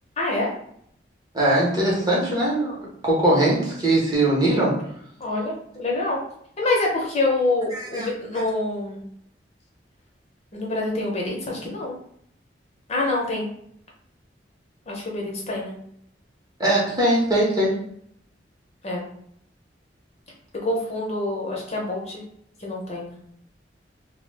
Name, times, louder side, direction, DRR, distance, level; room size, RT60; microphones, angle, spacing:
voice 1, 0.2-0.5 5.2-6.2 6.6-9.0 10.5-12.0 12.9-13.5 14.9-15.7 18.8-19.0 20.6-22.2 22.6-23.2, left 2 dB, 35° left, -2 dB, 0.6 m, -26 dB
voice 2, 1.3-4.8 7.7-8.1 16.6-17.8, right 1 dB, 20° right, -4 dB, 0.7 m, -21 dB
2.1 x 2.0 x 3.2 m, 0.68 s
head